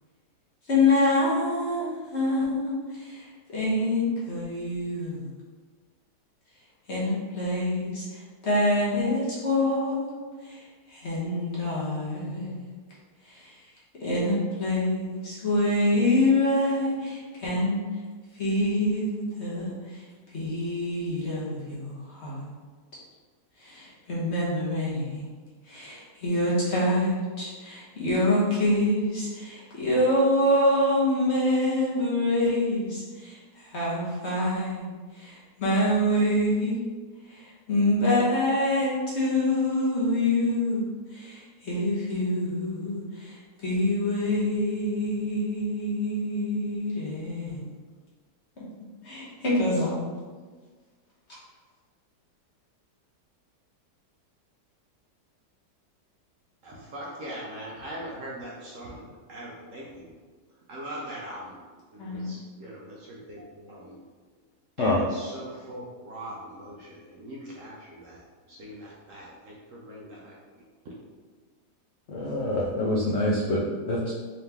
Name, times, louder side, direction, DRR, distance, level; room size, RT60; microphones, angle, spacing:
voice 1, 0.7-5.3 6.9-12.7 13.2-13.7 14.0-18.0 18.3-20.1 20.3-22.5 23.6-25.3 25.6-34.9 35.1-36.8 37.3-40.8 41.1-47.6 48.6-48.7 49.0-50.0 62.0-62.3, left 1 dB, 45° left, -7 dB, 1.1 m, -26 dB
voice 2, 56.6-60.1 60.7-61.6 61.9-64.0 64.8-71.0, right 1 dB, 65° right, -4 dB, 0.8 m, -41 dB
voice 3, 72.1-74.1, left 1 dB, 70° left, -4 dB, 0.6 m, -26 dB
3.9 x 2.9 x 3.4 m, 1.4 s
omnidirectional pair, 1.8 m